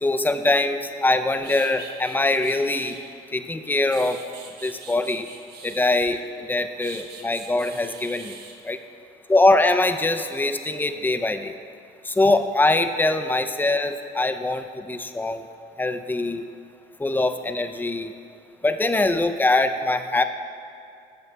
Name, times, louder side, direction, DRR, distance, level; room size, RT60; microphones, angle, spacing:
voice 1, 0.0-3.0 3.3-4.2 4.6-5.3 5.6-8.4 8.6-8.8 9.3-11.6 12.0-15.4 15.8-16.5 17.0-18.1 18.6-20.2, left 2 dB, 10° left, 9 dB, 0.5 m, -22 dB
sound 1, 1.0-1.1 1.4-3.0 3.6-6.3 6.8-8.6, right 5 dB, 75° right, 1.4 m, -43 dB
13.5 x 8.0 x 3.4 m, 2.6 s
cardioid pair, 110°, 17 cm